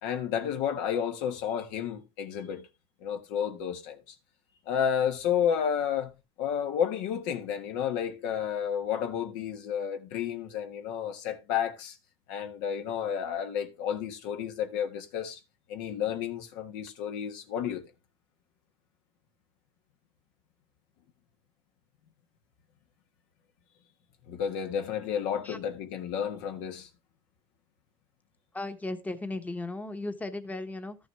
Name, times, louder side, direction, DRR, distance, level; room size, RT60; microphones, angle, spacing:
voice 1, 0.0-2.7 3.0-4.0 4.7-12.0 12.3-15.4 15.7-17.8 24.3-26.9, left 8 dB, 80° left, 1.5 m, -31 dB
voice 2, 28.5-31.0, left 2 dB, 10° left, 1.0 m, -36 dB
13.0 x 6.3 x 3.3 m
supercardioid pair, 110°, 16 cm